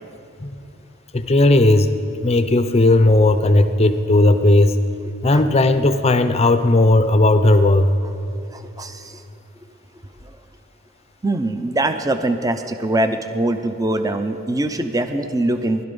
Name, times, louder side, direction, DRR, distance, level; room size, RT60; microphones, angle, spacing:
voice 1, 1.1-1.9 2.2-4.8 5.2-7.9, left 2 dB, 30° left, 10 dB, 0.6 m, -15 dB
voice 2, 8.5-9.2 11.2-15.8, right 1 dB, 15° right, 8 dB, 0.5 m, -22 dB
20.0 x 12.0 x 5.4 m, 2.9 s
head